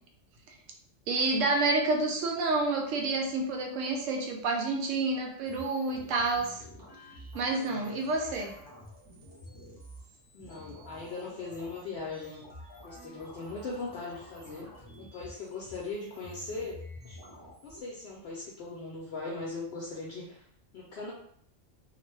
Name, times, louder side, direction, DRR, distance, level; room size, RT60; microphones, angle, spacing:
voice 1, 1.1-6.6 7.3-8.5, right 3 dB, 85° right, 2 dB, 1.0 m, -29 dB
sound 1, 5.4-17.8, left 1 dB, 20° right, 0.6 m, -49 dB
voice 2, 10.3-12.4 12.8-14.7 15.0-16.8 17.0-17.2 17.6-20.5 20.7-21.1, left 3 dB, 65° left, -3 dB, 0.7 m, -39 dB
2.4 x 2.2 x 3.1 m, 0.65 s
omnidirectional pair, 1.3 m